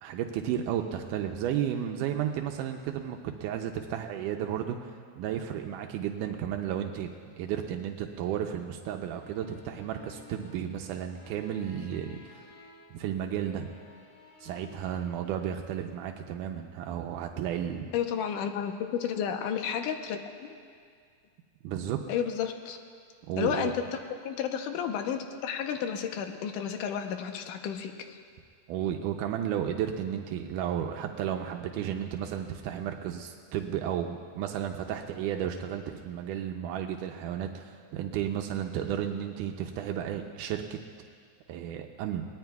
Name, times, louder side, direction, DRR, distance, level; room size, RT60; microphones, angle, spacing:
voice 1, 0.0-7.1 7.4-12.4 12.9-13.7 14.4-17.9 21.6-22.0 23.3-23.7 28.7-40.8 41.5-42.3, right 9 dB, 85° right, 3 dB, 2.2 m, -33 dB
sound 1, 9.2-13.0 13.3-14.9, left 4 dB, 60° left, 2.5 m, -54 dB
voice 2, 17.9-20.5 22.1-22.8 23.4-23.8 24.2-28.2, left 8 dB, 85° left, 5 dB, 2.4 m, -32 dB
22.5 x 19.0 x 2.3 m, 2.1 s
omnidirectional pair, 3.6 m